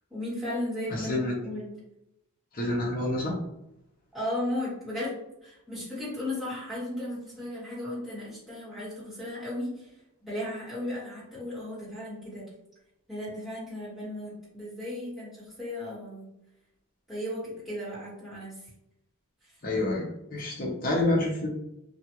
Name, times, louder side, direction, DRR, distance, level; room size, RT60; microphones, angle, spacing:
voice 1, 0.1-1.7 4.1-5.1 5.4-9.9 10.2-12.5 13.1-16.3 17.1-18.7 19.4-19.5, left 1 dB, ahead, -11 dB, 1.4 m, -35 dB
voice 2, 0.9-1.3 2.5-3.3 19.6-21.5, left 2 dB, 40° left, -2 dB, 0.7 m, -28 dB
2.4 x 2.3 x 2.9 m, 0.84 s
head